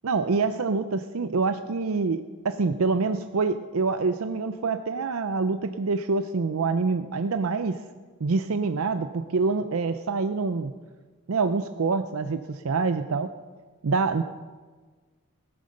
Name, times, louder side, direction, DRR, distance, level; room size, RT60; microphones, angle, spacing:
voice 1, 0.0-7.8 8.2-10.7 11.3-13.3 13.8-14.2, right 4 dB, 70° right, 9 dB, 0.5 m, -26 dB
19.5 x 8.9 x 6.6 m, 1.4 s
head